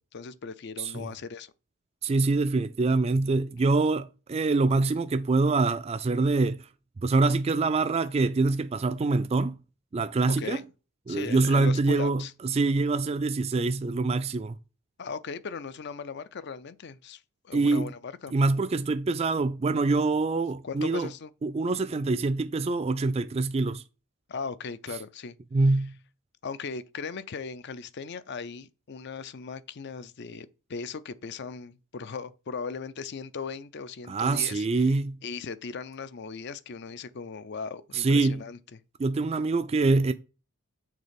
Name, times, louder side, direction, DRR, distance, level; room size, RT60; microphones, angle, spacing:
voice 1, 0.1-1.5 10.3-10.7 11.1-12.3 15.0-18.3 20.6-21.3 24.3-25.4 26.4-34.9 35.2-38.6, left 5 dB, 50° left, 0.5 m, -38 dB
voice 2, 2.0-6.7 7.0-9.6 9.9-10.6 11.1-14.6 17.5-17.9 18.3-21.1 21.4-23.8 25.5-26.0 34.1-35.2 37.9-38.4 39.0-40.1, right 3 dB, 25° right, 0.3 m, -25 dB
6.6 x 3.8 x 5.1 m
head